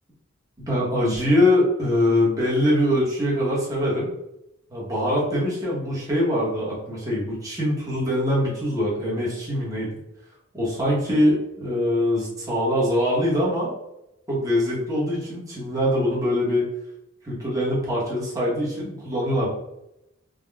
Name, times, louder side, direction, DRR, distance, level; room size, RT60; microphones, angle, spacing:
voice 1, 0.7-4.1 4.7-9.9 10.5-13.7 14.3-16.7 17.2-19.5, left 1 dB, 15° right, -6 dB, 0.9 m, -23 dB
3.5 x 2.1 x 2.2 m, 0.85 s
head